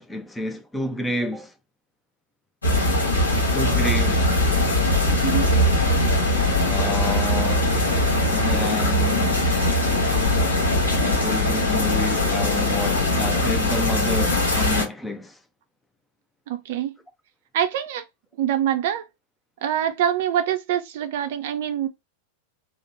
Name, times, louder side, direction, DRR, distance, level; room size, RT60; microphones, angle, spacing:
voice 1, 0.0-1.5 3.5-4.3 6.6-7.8 8.3-9.3 11.0-15.4, left 1 dB, 10° left, 0.4 m, -29 dB
sound 1, 2.6-14.9, left 1 dB, 75° left, 1.1 m, -21 dB
voice 2, 16.5-16.9 17.5-18.0 18.4-19.0 19.6-21.9, right 10 dB, 55° right, 0.5 m, -24 dB
3.0 x 2.1 x 3.7 m
figure-of-eight pair, 90°, 0 cm